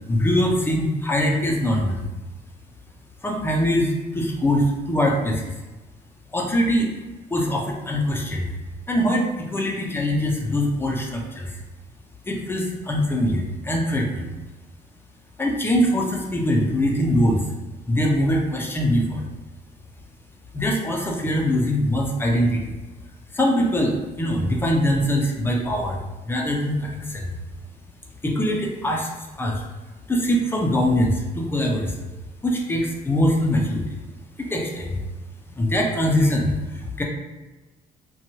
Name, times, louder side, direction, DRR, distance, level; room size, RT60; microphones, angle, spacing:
voice 1, 0.1-2.0 3.2-5.5 6.3-6.9 7.3-8.5 8.9-11.6 12.2-14.3 15.4-17.4 17.9-19.3 20.5-22.7 23.3-27.4 28.2-29.1 29.4-29.6 30.1-31.9 32.4-34.0 34.4-35.0 35.5-37.0, equal, 15° left, -1 dB, 0.5 m, -22 dB
2.9 x 2.2 x 2.7 m, 1.1 s
cardioid pair, 110°, 17 cm